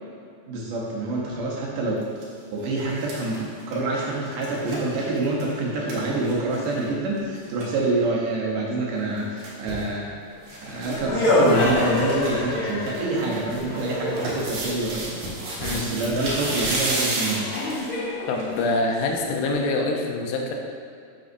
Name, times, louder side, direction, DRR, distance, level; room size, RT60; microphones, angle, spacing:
voice 1, 0.5-2.0 2.5-10.0 10.6-15.2 15.7-17.5, right 2 dB, 70° right, -3 dB, 2.4 m, -26 dB
sound 1, 2.0-2.2 2.6-6.9 7.2-7.3 7.4-7.7 9.0-9.9 10.5-11.0 11.2-11.3 11.7-12.3 12.7-17.9 18.4-18.5, right 2 dB, 90° right, 3.5 m, -32 dB
sound 2, 10.4-14.7 16.5-16.6 17.2-19.6, left 1 dB, 55° left, 1.4 m, -26 dB
voice 2, 15.6-15.9 18.3-20.5, left 2 dB, 90° left, 2 dB, 2.7 m, -25 dB
7.9 x 7.0 x 2.6 m, 2.4 s
omnidirectional pair, 4.3 m